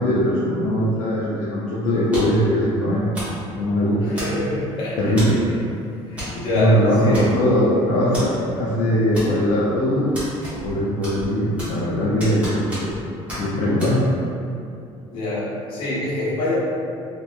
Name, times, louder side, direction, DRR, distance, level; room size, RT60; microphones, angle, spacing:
voice 1, 0.0-3.0 3.5-4.1 5.0-5.4 6.5-12.9 13.4-14.1, equal, 70° left, -7 dB, 0.4 m, -20 dB
sound 1, 2.1-2.5 3.1-3.4 4.2-4.6 5.2-5.4 6.2-6.4 6.6-6.7 7.1-7.6 8.1-8.3 9.1-9.6 10.1-10.8 11.0-11.9 12.2-13.0 13.3-13.4 13.8-13.9, equal, 10° right, 0.8 m, -32 dB
voice 2, 4.0-5.4 6.1-6.7 7.0-7.3 15.1-16.6, left 2 dB, 50° left, -8 dB, 0.8 m, -26 dB
2.7 x 2.2 x 2.2 m, 2.5 s
cardioid pair, 170°, 11 cm